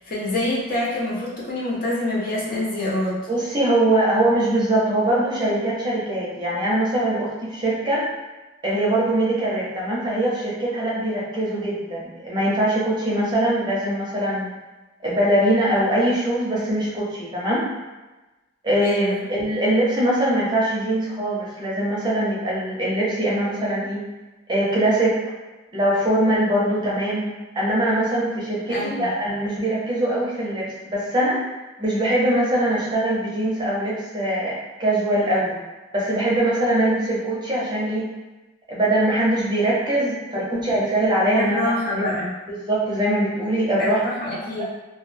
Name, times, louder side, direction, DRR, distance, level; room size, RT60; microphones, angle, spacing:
voice 1, 0.0-3.2 18.8-19.2 28.7-29.1 40.3-40.6 41.4-42.3 43.8-44.6, left 1 dB, 50° left, -6 dB, 0.7 m, -26 dB
voice 2, 3.3-8.1 8.6-14.5 15.0-17.7 18.6-24.1 24.5-25.2 25.7-31.4 31.8-35.6 35.9-38.1 38.7-42.0 42.5-44.0 44.6-44.7, right 1 dB, 25° right, -5 dB, 0.5 m, -22 dB
2.2 x 2.1 x 3.2 m, 1.1 s
head